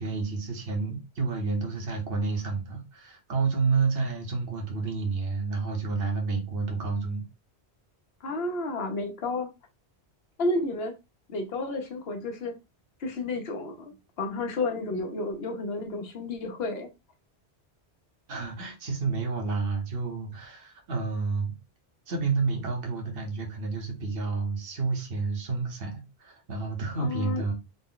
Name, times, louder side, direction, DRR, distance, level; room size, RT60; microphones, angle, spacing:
voice 1, 0.0-7.2 18.3-21.5 22.1-27.5, right 4 dB, 60° right, 1.1 m, -30 dB
voice 2, 8.2-9.5 10.4-10.9 11.3-12.5 13.0-16.9 27.0-27.5, left 2 dB, 70° left, 1.1 m, -31 dB
4.0 x 2.1 x 3.8 m
omnidirectional pair, 1.1 m